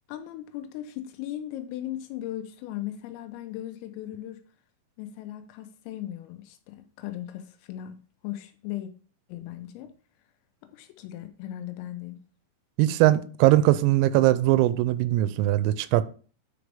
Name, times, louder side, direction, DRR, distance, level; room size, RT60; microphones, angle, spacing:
voice 1, 0.1-4.4 5.0-8.0 8.2-8.9 9.3-9.9 10.6-12.2, left 12 dB, 85° left, 3.5 m, -37 dB
voice 2, 12.8-16.0, right 15 dB, 85° right, 3.3 m, -21 dB
10.0 x 5.0 x 3.5 m
omnidirectional pair, 5.9 m